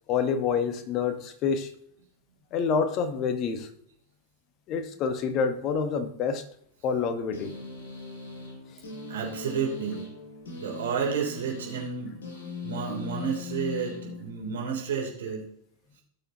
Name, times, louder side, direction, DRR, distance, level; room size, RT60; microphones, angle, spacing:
voice 1, 0.1-1.7 2.5-3.7 4.7-6.4 6.8-7.6 8.7-8.8, left 6 dB, 35° left, 10 dB, 1.2 m, -27 dB
sound 1, 7.3-14.7, left 3 dB, 60° left, 4.6 m, -40 dB
voice 2, 9.1-10.0 10.6-12.1 12.6-15.4, right 6 dB, 60° right, -1 dB, 3.1 m, -31 dB
17.5 x 6.4 x 2.9 m, 0.68 s
figure-of-eight pair, 90°, 0 cm